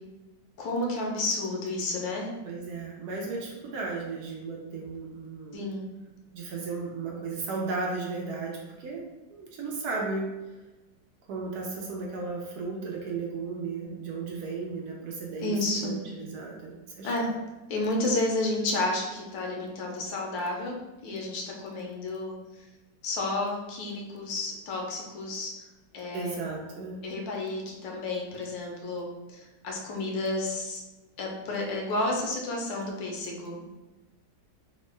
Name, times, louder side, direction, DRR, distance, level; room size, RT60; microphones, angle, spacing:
voice 1, 0.6-2.3 5.5-5.8 15.4-16.0 17.0-17.3 17.7-20.8 21.0-22.3 23.0-25.5 25.9-26.4 27.0-30.8 31.2-33.7, left 2 dB, 90° left, 0 dB, 1.4 m, -31 dB
voice 2, 2.5-5.7 6.3-9.0 9.3-10.3 11.3-17.1 26.1-27.0, right 4 dB, 70° right, -1 dB, 1.0 m, -35 dB
3.5 x 2.1 x 3.3 m, 1.1 s
omnidirectional pair, 1.9 m